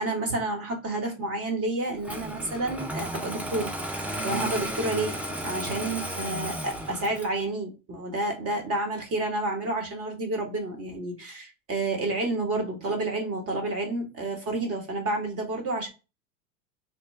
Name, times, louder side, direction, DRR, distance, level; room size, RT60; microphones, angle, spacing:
voice 1, 0.0-15.9, right 2 dB, 35° right, 1.3 m, -30 dB
Engine starting, 2.0-7.4, right 1 dB, 5° right, 0.3 m, -33 dB
3.0 x 2.2 x 3.2 m
hypercardioid pair, 85°, 39 cm